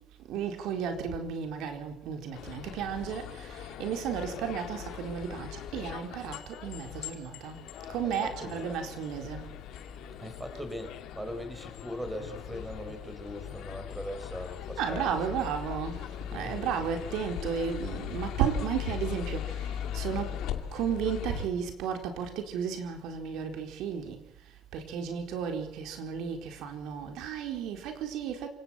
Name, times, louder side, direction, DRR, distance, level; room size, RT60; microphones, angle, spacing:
voice 1, 0.3-7.6 7.9-9.4 14.8-20.4 20.7-24.2 24.7-28.5, right 7 dB, 70° right, 4.2 m, -33 dB
sound 1, 2.3-21.5, left 10 dB, 65° left, 2.6 m, -39 dB
voice 2, 7.7-8.8 10.2-15.5 16.2-16.8, equal, 5° right, 4.3 m, -41 dB
28.0 x 18.0 x 5.9 m
cardioid pair, 135°, 0 cm